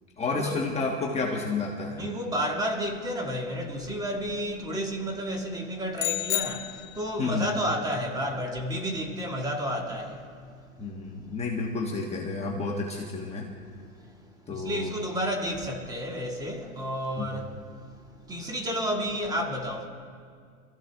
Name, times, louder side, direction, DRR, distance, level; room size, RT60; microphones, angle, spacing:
voice 1, 0.2-2.0 7.2-7.5 10.8-13.5 14.5-14.9 17.2-17.3, left 3 dB, 15° left, 1.4 m, -30 dB
voice 2, 1.9-10.6 14.0-14.1 14.5-17.8 18.3-19.9, equal, 10° right, 1.9 m, -31 dB
sound 1, 6.0-7.3, left 15 dB, 60° left, 0.9 m, -31 dB
27.0 x 14.5 x 3.5 m
supercardioid pair, 145°, 43 cm